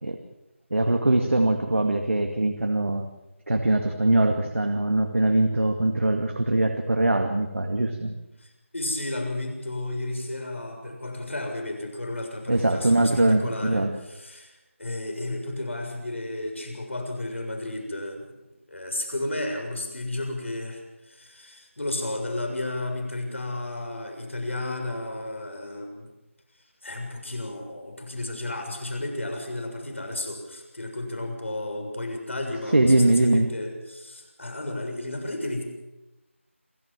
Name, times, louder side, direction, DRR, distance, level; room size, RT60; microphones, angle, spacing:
voice 1, 0.7-3.1 3.5-8.1 12.5-13.9 32.7-33.5, right 2 dB, 70° right, 4 dB, 2.1 m, -22 dB
voice 2, 8.4-18.3 18.7-26.1 26.8-35.6, left 2 dB, 65° left, 3 dB, 6.8 m, -33 dB
27.5 x 14.0 x 7.5 m, 1.0 s
figure-of-eight pair, 170°, 7 cm